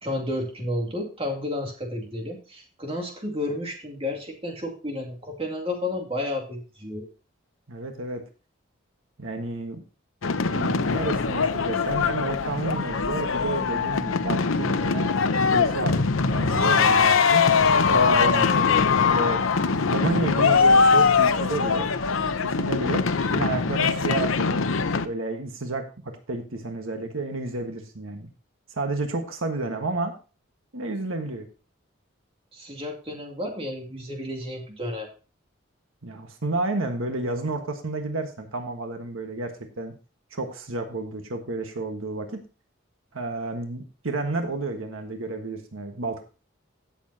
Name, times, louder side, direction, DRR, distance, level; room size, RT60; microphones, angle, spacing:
voice 1, 0.0-7.1 32.5-35.1, left 1 dB, 30° right, 1 dB, 2.4 m, -31 dB
voice 2, 7.7-8.2 9.2-9.8 10.5-15.1 15.5-17.5 17.8-19.4 19.9-21.9 22.3-23.1 23.3-24.6 25.0-28.3 28.7-30.1 30.7-31.5 36.0-39.9 40.3-42.4 43.1-46.2, right 2 dB, 85° right, 5 dB, 1.5 m, -31 dB
sound 1, 10.2-25.1, left 5 dB, 85° left, 0.8 m, -22 dB
16.5 x 7.2 x 2.8 m, 0.34 s
head